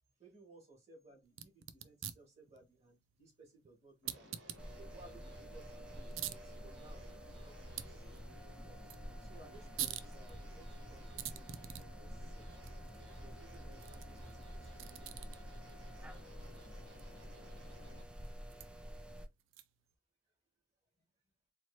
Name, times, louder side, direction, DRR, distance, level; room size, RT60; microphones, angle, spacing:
voice 1, 0.2-4.3 4.8-8.1 8.5-8.8 9.2-12.8 13.2-15.2, right 2 dB, 35° right, 2.1 m, -61 dB
sound 1, 1.3-19.9, right 11 dB, 90° right, 0.5 m, -49 dB
sound 2, 4.0-18.0, left 2 dB, 70° right, 1.7 m, -59 dB
sound 3, 4.6-19.3, equal, 5° right, 0.5 m, -49 dB
voice 2, 16.4-16.9 17.3-18.2 20.9-21.3, left 2 dB, 35° left, 1.0 m, -75 dB
4.5 x 3.0 x 2.8 m
head